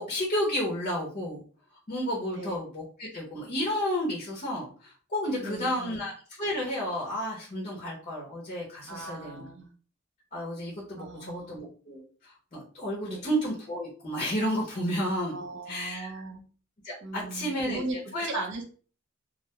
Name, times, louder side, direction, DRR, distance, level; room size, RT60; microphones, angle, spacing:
voice 1, 0.0-1.4 1.9-6.1 6.4-9.4 10.3-15.4 15.7-16.1 16.8-18.3, equal, 35° left, -3 dB, 0.7 m, -32 dB
voice 2, 5.4-6.0 8.9-9.7 11.0-11.6 13.0-13.3 15.3-16.4 17.0-18.0 18.2-18.7, right 3 dB, 60° right, 1 dB, 0.7 m, -38 dB
2.4 x 2.2 x 2.8 m, 0.42 s
head